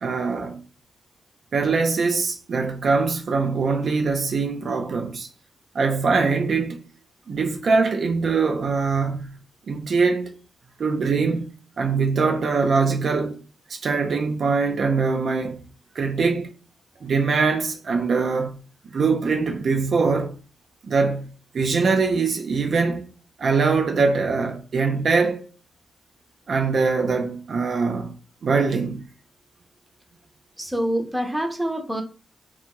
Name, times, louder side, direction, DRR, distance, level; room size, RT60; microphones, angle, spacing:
voice 1, 0.0-0.6 1.5-5.3 5.7-6.8 7.3-9.4 9.7-10.3 10.8-13.4 13.7-15.6 16.0-16.5 17.0-18.6 18.9-20.3 20.8-23.1 23.4-25.4 26.5-28.2 28.4-29.1, right 4 dB, 60° right, 0.4 m, -22 dB
voice 2, 30.6-32.0, equal, 10° right, 0.6 m, -26 dB
2.6 x 2.3 x 2.9 m
cardioid pair, 65°, 0 cm